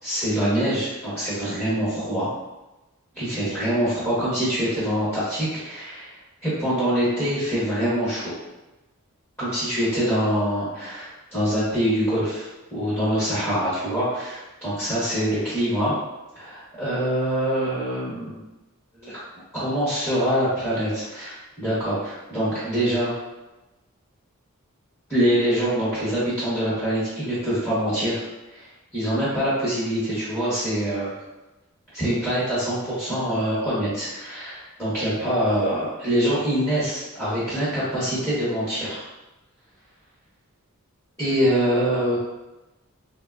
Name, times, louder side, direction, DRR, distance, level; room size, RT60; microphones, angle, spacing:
voice 1, 0.0-2.3 3.1-6.1 6.4-8.3 9.4-15.9 16.3-18.4 19.0-19.2 19.5-23.1 25.1-28.2 28.5-28.7 28.9-31.1 31.9-39.0 41.2-42.2, equal, 10° left, -12 dB, 1.0 m, -24 dB
3.7 x 2.1 x 2.4 m, 1.0 s
head